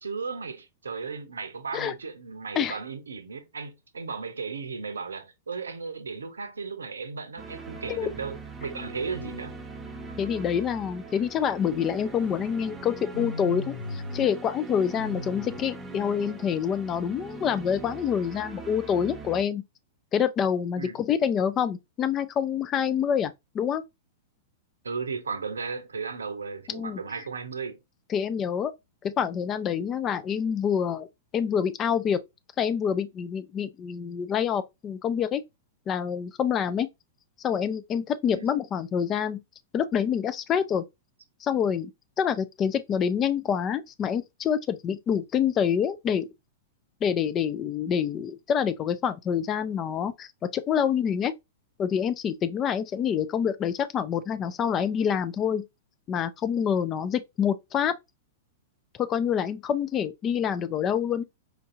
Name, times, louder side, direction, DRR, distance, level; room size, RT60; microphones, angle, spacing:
voice 1, 0.0-9.5 20.8-21.0 24.8-27.8 38.3-38.5, right 5 dB, 75° right, 0.6 m, -35 dB
sound 1, 7.4-19.4, right 3 dB, 15° right, 0.8 m, -41 dB
voice 2, 10.2-19.6 20.1-23.8 26.7-27.0 28.1-28.7 29.0-31.1 31.3-32.2 32.6-35.4 35.9-36.9 37.4-39.4 39.7-40.8 41.4-41.9 42.2-46.3 47.0-51.3 51.8-55.6 56.1-57.9 59.0-61.2, left 8 dB, 25° left, 0.4 m, -27 dB
sound 2, 13.1-14.3 14.6-15.6, left 1 dB, 85° left, 0.5 m, -36 dB
4.5 x 2.6 x 2.5 m
figure-of-eight pair, 100°, 0 cm